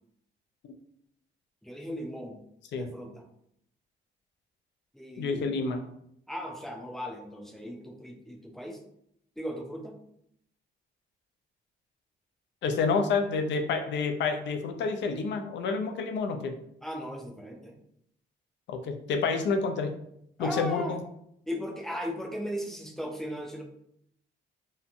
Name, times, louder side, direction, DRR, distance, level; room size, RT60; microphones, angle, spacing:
voice 1, 1.6-2.4 2.8-3.2 4.9-5.5 6.3-8.8 9.4-10.0 16.8-17.8 20.4-20.9 21.5-23.6, equal, ahead, 2 dB, 0.5 m, -37 dB
voice 2, 5.2-5.8 12.6-16.5 18.7-19.9 20.4-21.0, left 4 dB, 65° left, 6 dB, 0.4 m, -28 dB
2.8 x 2.1 x 2.5 m, 0.73 s
cardioid pair, 90°, 20 cm